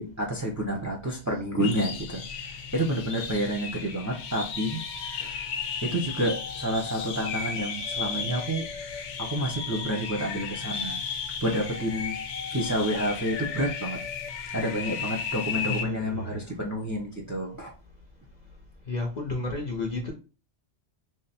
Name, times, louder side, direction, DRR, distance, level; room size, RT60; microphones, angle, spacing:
voice 1, 0.0-2.2 2.7-4.8 5.1-5.3 5.8-8.6 9.2-11.0 11.4-12.1 12.5-14.0 14.5-17.7, equal, 20° right, -1 dB, 0.5 m, -29 dB
sound 1, 1.6-15.8, left 6 dB, 85° left, 1.0 m, -34 dB
voice 2, 15.7-16.4 18.9-20.1, left 2 dB, 45° left, 1 dB, 0.7 m, -31 dB
3.3 x 2.0 x 4.1 m, 0.33 s
omnidirectional pair, 1.2 m